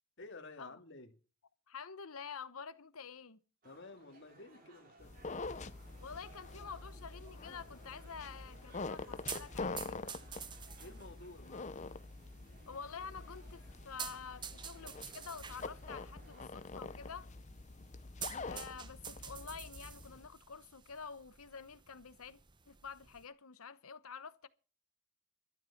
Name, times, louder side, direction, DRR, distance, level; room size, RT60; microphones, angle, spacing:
voice 1, 0.2-1.1 3.6-5.1 10.8-12.0, left 2 dB, 55° left, 2.0 m, -52 dB
voice 2, 1.7-3.4 6.0-10.1 12.7-17.3 18.5-22.4 22.7-24.5, left 6 dB, 80° left, 0.9 m, -48 dB
sound 1, 3.6-16.5, right 2 dB, 40° right, 2.8 m, -62 dB
sound 2, 5.0-20.3, left 3 dB, 35° left, 0.6 m, -46 dB
sound 3, 5.8-23.2, right 7 dB, 20° right, 0.7 m, -51 dB
12.5 x 10.5 x 5.9 m
head